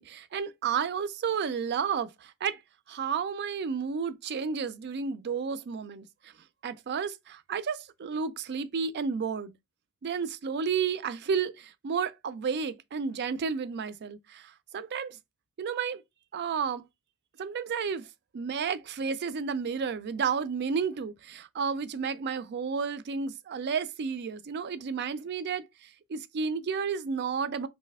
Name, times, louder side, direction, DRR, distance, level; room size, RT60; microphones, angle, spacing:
voice 1, 0.0-2.6 2.9-6.3 6.6-9.5 10.0-15.2 15.6-16.0 16.3-16.8 17.4-18.1 18.3-27.7, right 6 dB, 50° right, 0.4 m, -32 dB
3.2 x 2.6 x 3.4 m
head